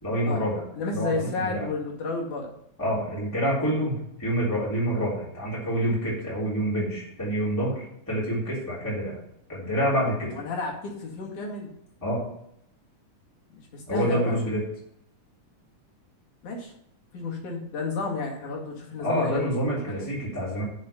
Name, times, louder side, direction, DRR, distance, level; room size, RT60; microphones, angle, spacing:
voice 1, 0.0-0.6 0.9-1.7 2.8-7.8 8.1-9.2 9.5-10.4 12.0-12.2 13.9-14.6 19.0-20.6, equal, 5° left, -8 dB, 3.5 m, -27 dB
voice 2, 0.7-2.5 10.3-11.7 13.5-14.4 16.4-16.7 17.1-20.1, left 3 dB, 70° left, 0 dB, 3.6 m, -32 dB
7.4 x 6.9 x 7.0 m, 0.74 s
omnidirectional pair, 3.6 m